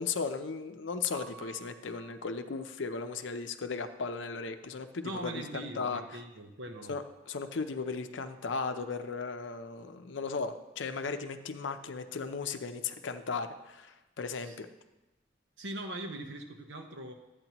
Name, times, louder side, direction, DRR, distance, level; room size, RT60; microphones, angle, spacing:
voice 1, 0.0-6.0 6.9-14.7, left 4 dB, 75° left, 8 dB, 0.6 m, -36 dB
Piano, 1.1-6.9 7.2-8.8 9.0-15.5, right 8 dB, 15° right, 3.5 m, -57 dB
voice 2, 5.0-7.0 14.4-14.6 15.6-17.1, right 1 dB, 75° right, 4 dB, 1.0 m, -41 dB
12.0 x 8.7 x 3.0 m, 1.1 s
head